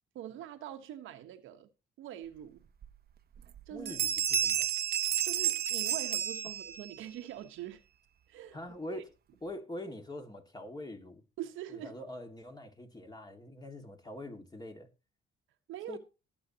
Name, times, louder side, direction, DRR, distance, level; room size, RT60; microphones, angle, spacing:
voice 1, 0.1-1.7 2.0-2.6 3.7-4.0 5.2-7.8 8.3-8.6 8.9-9.0 11.4-11.9 15.7-16.0, right 12 dB, 90° right, 1.2 m, -43 dB
sound 1, 2.8-2.9 3.4-3.6 3.9-7.0, right 9 dB, 50° right, 0.8 m, -31 dB
voice 2, 3.7-4.7 6.4-6.5 8.5-9.1 9.4-11.2 11.7-14.9 15.9-16.0, left 1 dB, 20° left, 2.1 m, -44 dB
20.0 x 7.4 x 2.9 m
cardioid pair, 90°, 20 cm